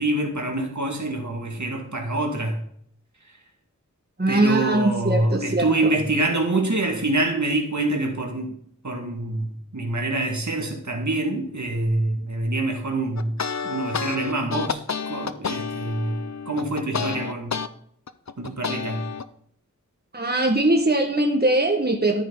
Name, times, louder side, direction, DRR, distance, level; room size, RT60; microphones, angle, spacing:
voice 1, 0.0-2.6 4.3-8.5 8.8-13.3 13.6-14.8 15.1-16.2 16.5-17.6 18.4-19.0, right 2 dB, 65° right, 2 dB, 2.3 m, -25 dB
voice 2, 4.2-5.7 20.1-22.2, right 1 dB, 30° right, 2 dB, 1.8 m, -21 dB
sound 1, 13.2-17.7 18.1-19.2, left 6 dB, 60° left, 0.7 m, -29 dB
13.5 x 9.2 x 4.1 m, 0.65 s
wide cardioid pair, 65°, 31 cm